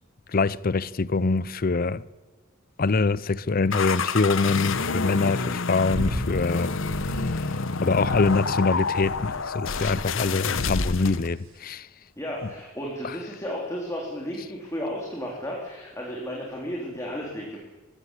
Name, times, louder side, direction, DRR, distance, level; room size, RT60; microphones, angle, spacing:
voice 1, 0.3-2.0 2.8-6.7 7.2-7.3 7.8-11.9, left 3 dB, 45° left, 0.6 m, -24 dB
sound 1, 3.7-11.3, left 4 dB, 65° left, 1.0 m, -28 dB
sound 2, 5.9-6.3 6.8-7.3 7.9-8.5 9.0-9.5 10.1-10.4 11.1-11.5 12.5-12.6, equal, 75° right, 8.0 m, -33 dB
voice 2, 12.2-17.6, equal, 15° left, 3.6 m, -33 dB
21.5 x 15.5 x 8.3 m
head